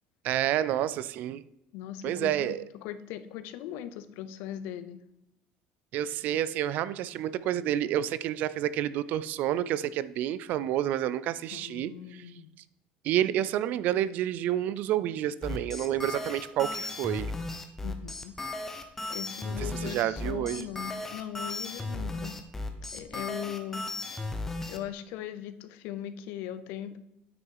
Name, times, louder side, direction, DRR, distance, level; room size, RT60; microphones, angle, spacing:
voice 1, 0.2-1.4 2.0-2.6 5.9-12.2 13.0-17.3 19.6-20.7, right 12 dB, 55° right, 16 dB, 0.4 m, -29 dB
voice 2, 1.7-5.0 11.5-12.5 17.8-18.3 19.1-22.4 22.9-23.8 24.7-27.0, left 11 dB, 80° left, 12 dB, 0.7 m, -39 dB
sound 1, 15.4-24.8, left 2 dB, 10° left, 0.8 m, -35 dB
9.3 x 6.1 x 4.7 m, 0.86 s
cardioid pair, 165°, 3 cm